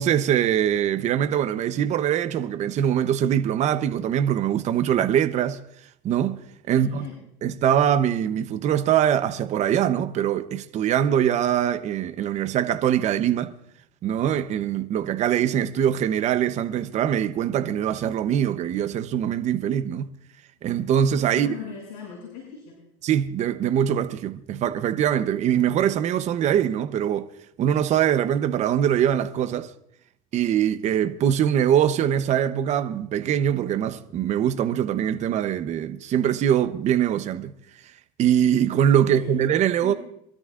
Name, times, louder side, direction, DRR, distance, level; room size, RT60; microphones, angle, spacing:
voice 1, 0.0-5.6 6.0-6.4 6.7-7.1 7.4-13.5 14.0-20.1 20.6-21.5 23.0-27.3 27.6-29.7 30.3-37.5 38.2-39.9, right 9 dB, 40° right, 0.9 m, -23 dB
voice 2, 6.8-7.1 21.3-22.7 39.1-39.3 39.8-40.0, left 8 dB, 70° left, 7.0 m, -38 dB
26.0 x 13.0 x 2.5 m
supercardioid pair, 120°, 18 cm